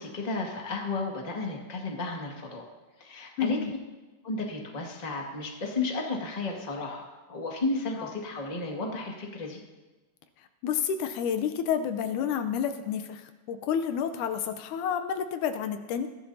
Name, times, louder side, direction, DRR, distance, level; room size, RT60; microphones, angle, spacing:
voice 1, 0.0-2.6 3.0-3.6 4.2-9.6, left 3 dB, 15° left, -1 dB, 1.4 m, -33 dB
voice 2, 3.4-3.7 8.0-8.1 10.6-16.1, left 8 dB, 80° left, 8 dB, 2.2 m, -30 dB
21.0 x 15.0 x 2.8 m, 1.2 s
omnidirectional pair, 3.6 m